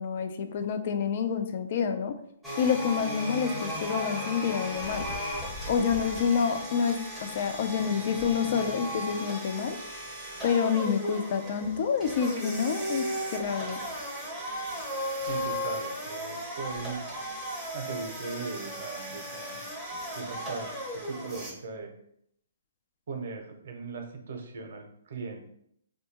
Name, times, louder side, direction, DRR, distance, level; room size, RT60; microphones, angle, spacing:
voice 1, 0.0-2.2 2.6-5.1 5.7-9.8 10.4-13.8, left 6 dB, 45° left, 8 dB, 0.3 m, -28 dB
sound 1, 2.4-21.5, equal, 5° right, 0.6 m, -36 dB
sound 2, 4.7-6.4 6.8-6.9 7.4-7.5 7.9-9.0 10.0-10.1 11.5-11.6 12.2-12.3 13.0-13.2 14.5-14.6 14.8-14.9 16.6-17.0 17.7-17.8, left 2 dB, 75° left, 1.1 m, -44 dB
voice 2, 15.2-17.0 17.7-19.6 20.1-21.9 23.1-25.5, right 4 dB, 60° right, 3 dB, 0.6 m, -39 dB
2.7 x 2.2 x 2.8 m, 0.70 s
hypercardioid pair, 150°, 0 cm